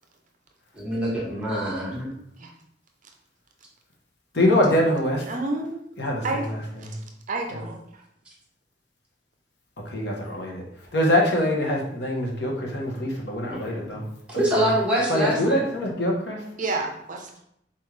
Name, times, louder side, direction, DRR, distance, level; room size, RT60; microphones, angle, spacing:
voice 1, 0.8-2.2 13.5-14.0 14.3-15.6, equal, 5° right, -6 dB, 1.4 m, -25 dB
voice 2, 4.3-5.2 6.0-6.6 6.8-6.9 7.5-7.6 9.8-10.6 10.9-14.0 14.3-14.7 15.1-16.4, left 1 dB, 65° left, -1 dB, 1.0 m, -24 dB
voice 3, 5.2-5.8 6.2-6.5 6.8-7.0 7.3-8.0 16.6-17.4, right 2 dB, 45° right, 3 dB, 0.6 m, -30 dB
4.1 x 3.7 x 3.2 m, 0.73 s
head